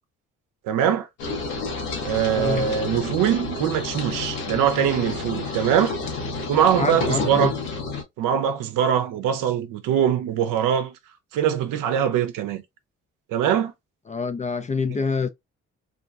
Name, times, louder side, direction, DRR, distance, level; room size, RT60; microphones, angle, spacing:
voice 1, 0.6-1.1 2.0-5.9 6.5-7.5 8.2-11.0 11.3-12.6 13.3-13.7, right 9 dB, 70° right, 0.6 m, -22 dB
sound 1, 1.2-8.0, left 4 dB, 80° left, 1.0 m, -30 dB
voice 2, 2.4-2.7 6.8-7.5 14.1-15.3, left 4 dB, 25° left, 0.3 m, -26 dB
3.7 x 2.3 x 2.4 m
hypercardioid pair, 50°, 33 cm